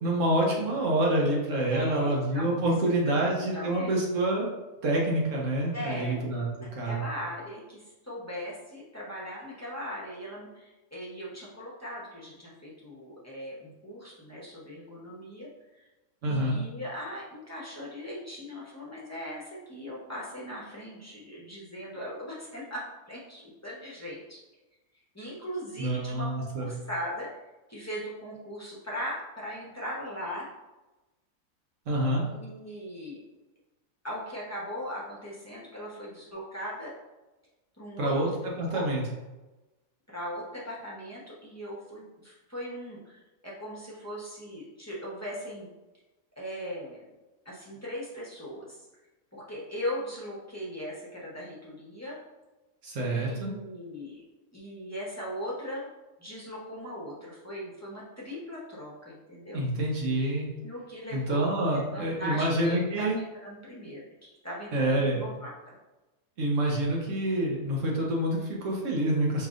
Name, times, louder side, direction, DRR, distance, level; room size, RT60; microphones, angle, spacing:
voice 1, 0.0-4.5 4.8-7.1 16.2-16.6 25.8-26.7 31.9-32.2 38.0-38.3 38.6-39.0 52.8-53.5 59.5-60.5 61.1-63.2 64.7-65.2 66.4-69.5, right 1 dB, 65° right, -2 dB, 1.3 m, -27 dB
voice 2, 1.7-2.5 3.0-3.9 5.7-15.9 16.2-24.4 25.1-27.3 27.7-30.5 32.3-33.2 34.0-36.9 37.8-38.1 38.7-38.9 40.1-45.7 46.4-47.0 47.4-48.9 49.3-52.2 53.1-54.2 54.5-55.9 56.2-59.6 60.6-61.5 61.9-65.7, equal, 15° left, -6 dB, 0.7 m, -39 dB
5.2 x 2.8 x 2.5 m, 1.1 s
omnidirectional pair, 1.4 m